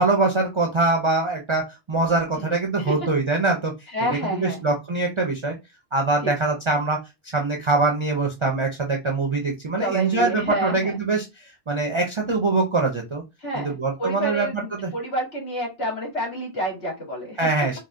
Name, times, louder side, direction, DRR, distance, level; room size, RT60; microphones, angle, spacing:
voice 1, 0.0-3.7 4.3-5.6 5.9-7.0 7.2-13.2 13.5-14.9 17.4-17.8, right 3 dB, 40° right, 1 dB, 0.4 m, -23 dB
voice 2, 2.3-2.9 3.9-4.6 6.2-6.3 9.8-11.0 13.4-17.4, right 1 dB, 60° left, -2 dB, 1.9 m, -29 dB
3.9 x 2.0 x 2.4 m, 0.23 s
omnidirectional pair, 1.2 m